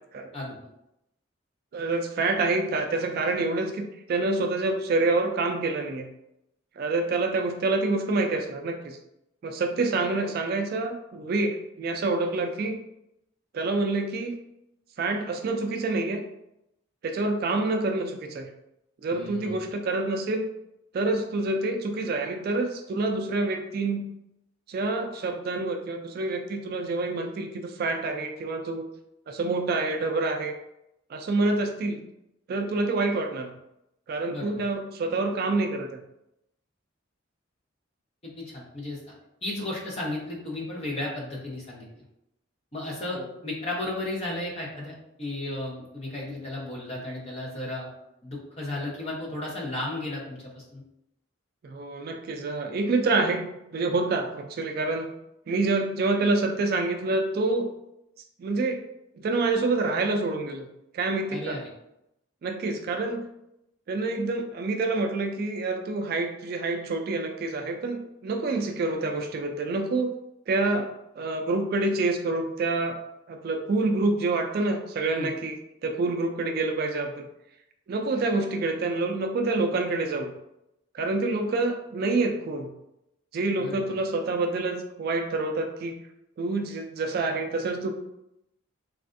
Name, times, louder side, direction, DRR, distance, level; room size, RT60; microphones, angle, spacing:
voice 1, 1.7-6.1 6.8-9.0 9.4-12.8 13.5-14.3 15.0-16.2 17.0-18.5 19.0-20.5 20.9-24.1 24.7-28.9 29.3-30.5 31.1-32.0 32.5-33.5 34.1-36.0 43.1-43.2 51.6-55.1 55.5-57.7 58.4-58.8 59.2-60.7 60.9-61.6 62.4-63.2 63.9-70.1 70.5-70.9 71.2-73.0 73.3-75.6 75.8-77.2 77.9-80.3 80.9-82.7 83.3-86.0 86.4-87.9, right 3 dB, 50° right, 5 dB, 0.3 m, -27 dB
voice 2, 19.1-19.6 34.3-34.7 38.2-39.0 39.4-41.9 42.7-47.9 48.2-50.8 61.3-61.7 75.1-75.3 83.6-83.9, left 2 dB, 30° left, -4 dB, 0.8 m, -34 dB
3.2 x 2.4 x 2.5 m, 0.83 s
head